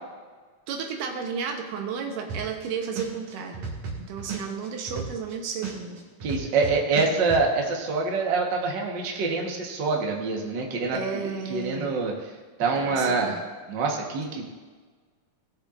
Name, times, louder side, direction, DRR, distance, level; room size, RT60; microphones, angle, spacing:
voice 1, 0.7-3.7 4.0-6.1 10.9-12.0 12.8-13.4, right 6 dB, 85° right, 3 dB, 2.6 m, -33 dB
sound 1, 2.3-2.7 3.0-5.3 5.6-7.4, right 5 dB, 70° right, 3.2 m, -33 dB
voice 2, 6.2-12.3 12.6-13.4 13.7-14.4, right 4 dB, 50° right, 0 dB, 1.4 m, -26 dB
18.5 x 6.7 x 2.5 m, 1.4 s
omnidirectional pair, 3.7 m